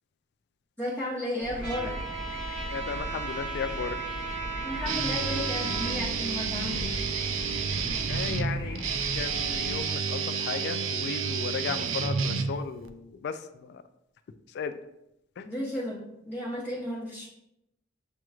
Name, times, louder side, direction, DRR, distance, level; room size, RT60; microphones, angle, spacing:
voice 1, 0.8-1.9 4.6-6.9 15.4-16.0 16.3-17.3, left 1 dB, 10° left, -10 dB, 0.9 m, -33 dB
sound 1, 1.4-9.8, left 1 dB, 30° left, 1.1 m, -38 dB
Trumpet, 1.6-5.9, right 4 dB, 65° right, 1.3 m, -36 dB
voice 2, 2.7-4.0 8.1-8.8 9.1-13.8 14.5-14.7 15.4-15.5, left 6 dB, 60° left, 10 dB, 0.3 m, -35 dB
Guitar, 4.8-12.9, right 6 dB, 85° right, 0.4 m, -30 dB
7.6 x 3.0 x 2.3 m, 0.83 s
head